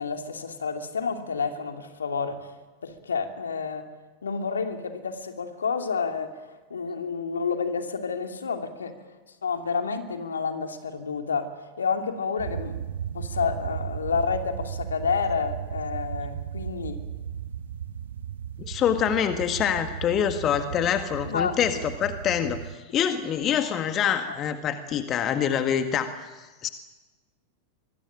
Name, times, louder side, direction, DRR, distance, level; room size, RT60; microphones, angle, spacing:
voice 1, 0.0-2.5 2.8-3.8 4.2-6.3 6.7-8.9 9.4-11.5 11.8-12.8 13.1-17.0 21.2-21.8 22.4-22.5, left 5 dB, 70° left, 5 dB, 2.7 m, -29 dB
sound 1, 12.4-22.7, right 9 dB, 60° right, 0.9 m, -35 dB
voice 2, 18.6-26.7, left 9 dB, 30° left, 7 dB, 1.8 m, -26 dB
25.0 x 21.5 x 8.9 m, 1.2 s
figure-of-eight pair, 90°, 0 cm